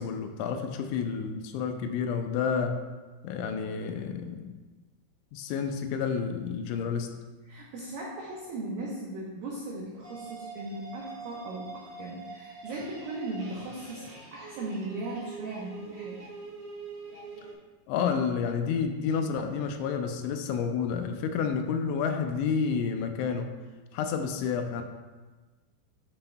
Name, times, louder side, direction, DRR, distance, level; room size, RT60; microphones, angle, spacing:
voice 1, 0.0-2.8 3.2-4.6 5.3-7.2 17.9-23.5 23.9-24.8, left 6 dB, 85° left, 6 dB, 2.9 m, -30 dB
voice 2, 7.5-16.2, right 2 dB, 90° right, -4 dB, 2.0 m, -38 dB
sound 1, 10.0-17.5, right 4 dB, 70° right, 1.2 m, -44 dB
11.5 x 5.6 x 2.2 m, 1.3 s
omnidirectional pair, 5.4 m